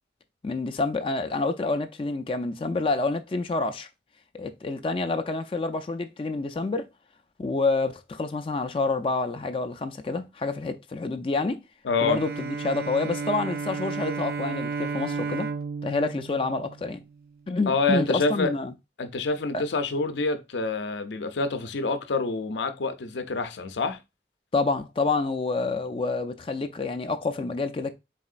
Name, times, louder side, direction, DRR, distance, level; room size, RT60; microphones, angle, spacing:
voice 1, 0.4-3.9 4.3-6.9 7.4-11.6 12.0-15.5 15.8-17.0 17.5-18.7 19.5-19.6 24.5-27.9, left 3 dB, 30° left, 0.3 m, -28 dB
voice 2, 11.8-12.2 17.7-18.5 19.0-24.0, left 3 dB, 90° left, 0.6 m, -27 dB
Bowed string instrument, 12.0-17.4, right 5 dB, 60° right, 0.3 m, -33 dB
4.1 x 3.7 x 2.4 m
head